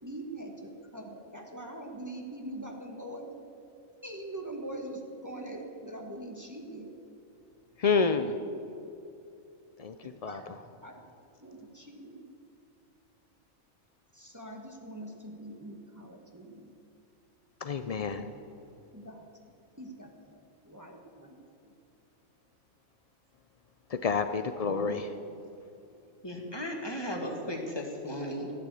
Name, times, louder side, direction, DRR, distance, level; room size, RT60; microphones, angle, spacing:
voice 1, 0.0-3.4 4.0-6.9 10.0-10.5 10.8-10.9 11.4-12.2 14.1-16.7 18.1-18.3 18.9-19.3 19.8-21.4 21.6-21.7, right 1 dB, 15° right, 1 dB, 1.4 m, -43 dB
voice 2, 7.8-8.4 9.8-9.9 10.2-10.4 17.6-18.3 23.9-25.2, left 5 dB, 70° left, 9 dB, 0.3 m, -28 dB
voice 3, 24.6-24.9 26.2-28.5, equal, 20° left, 1 dB, 2.0 m, -36 dB
13.5 x 11.5 x 8.3 m, 2.7 s
omnidirectional pair, 1.4 m